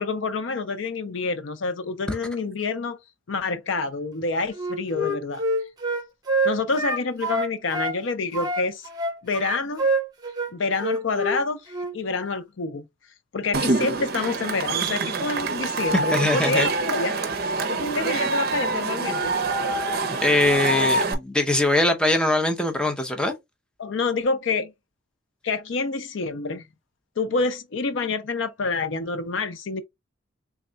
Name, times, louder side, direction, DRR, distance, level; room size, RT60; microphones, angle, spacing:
voice 1, 0.0-3.0 3.3-5.4 6.4-8.9 9.2-9.9 10.5-12.9 13.3-17.2 17.7-19.4 23.8-24.7 25.4-26.6 27.2-29.8, left 3 dB, 70° left, 0.5 m, -27 dB
Wind instrument woodwind instrument, 4.6-8.0 8.3-11.4 11.7-11.9, right 1 dB, 20° right, 0.9 m, -26 dB
Cheering / Crowd, 13.5-21.1, right 3 dB, 50° right, 0.6 m, -26 dB
voice 2, 15.9-16.7 20.2-23.3, left 2 dB, 5° left, 0.6 m, -22 dB
3.5 x 2.2 x 3.7 m
head